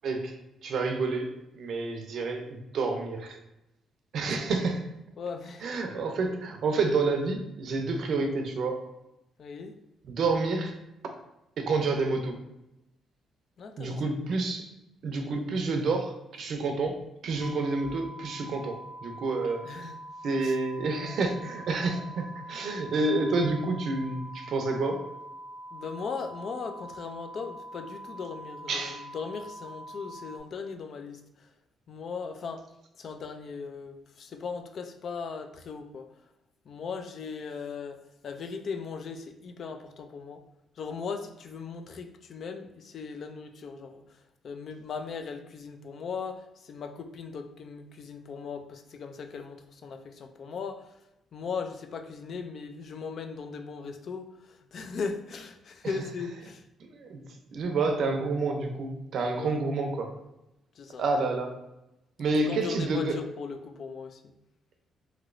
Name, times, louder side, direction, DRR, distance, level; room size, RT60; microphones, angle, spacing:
voice 1, 0.0-3.4 4.1-4.9 5.6-8.8 10.1-10.8 11.6-12.3 13.8-14.7 15.0-17.0 17.2-18.8 19.0-19.9 20.2-25.1 28.7-29.0 55.8-56.0 56.8-57.2 57.5-60.2 61.0-61.6 62.2-63.2, right 3 dB, 65° right, 4 dB, 0.5 m, -29 dB
voice 2, 5.2-5.7 9.4-9.7 13.6-14.0 19.6-20.0 20.4-20.6 25.7-31.2 31.9-32.7 33.0-36.1 36.7-40.4 40.8-44.0 44.4-50.9 51.3-56.6 59.4-59.6 60.8-61.0 62.5-64.2, left 5 dB, 60° left, 6 dB, 0.4 m, -38 dB
sound 1, 17.4-30.4, right 1 dB, 25° left, 0.8 m, -44 dB
3.0 x 3.0 x 2.5 m, 0.90 s
cardioid pair, 90°, 0 cm